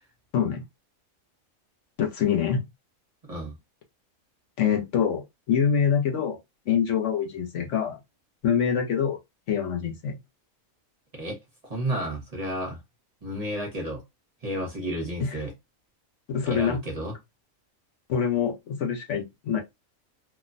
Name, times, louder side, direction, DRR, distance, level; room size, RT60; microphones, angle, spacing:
voice 1, 2.0-2.6 4.6-6.4 6.7-8.0 8.4-9.2 9.5-10.2 15.2-15.3 16.3-16.8 18.1-19.6, left 7 dB, 65° left, 1.0 m, -25 dB
voice 2, 11.6-12.8 13.2-14.0 14.4-15.5 16.4-17.1, right 1 dB, 30° right, 0.9 m, -31 dB
3.0 x 2.2 x 2.4 m
omnidirectional pair, 1.4 m